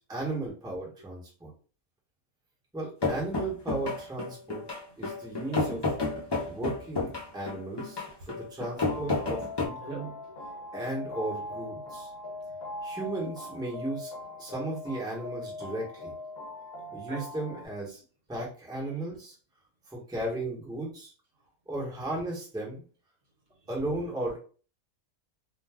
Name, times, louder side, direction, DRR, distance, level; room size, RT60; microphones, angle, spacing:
voice 1, 0.1-1.5 2.7-4.6 5.0-5.8 6.4-10.1 10.7-12.1 12.8-14.1 14.4-16.1 16.9-18.0 18.3-19.3 19.9-21.1 21.7-22.8 23.7-24.4, right 2 dB, 5° right, -3 dB, 0.8 m, -35 dB
sound 1, 3.0-9.7, left 3 dB, 30° left, 0.4 m, -31 dB
voice 2, 4.9-5.6 6.1-6.6 7.2-7.4 8.0-8.4 9.8-10.6 12.1-12.8 17.1-17.3, right 3 dB, 65° right, 1 dB, 0.9 m, -49 dB
sound 2, 8.7-17.7, left 2 dB, 55° left, 0.8 m, -41 dB
2.5 x 2.2 x 3.4 m, 0.38 s
omnidirectional pair, 1.5 m